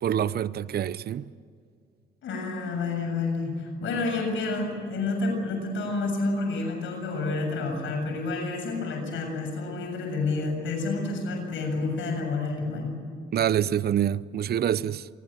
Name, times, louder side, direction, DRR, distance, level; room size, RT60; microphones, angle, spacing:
voice 1, 0.0-1.3 13.3-15.1, right 10 dB, 55° right, 0.7 m, -26 dB
voice 2, 2.2-12.9, left 3 dB, 75° left, 7.5 m, -29 dB
28.0 x 19.5 x 9.1 m
cardioid pair, 90°, 20 cm